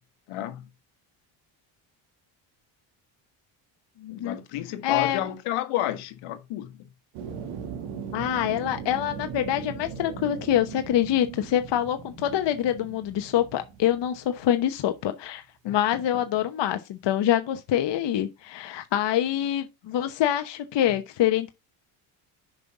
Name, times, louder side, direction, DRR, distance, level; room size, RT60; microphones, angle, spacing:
voice 1, 0.3-0.6 4.1-6.9 15.6-16.0, left 13 dB, 80° left, 1.6 m, -31 dB
voice 2, 4.0-4.4 4.8-5.2 8.1-21.5, left 11 dB, 55° left, 1.0 m, -25 dB
sound 1, 7.1-14.8, right 7 dB, 85° right, 1.8 m, -39 dB
6.7 x 5.5 x 5.9 m
supercardioid pair, 80°, 50 cm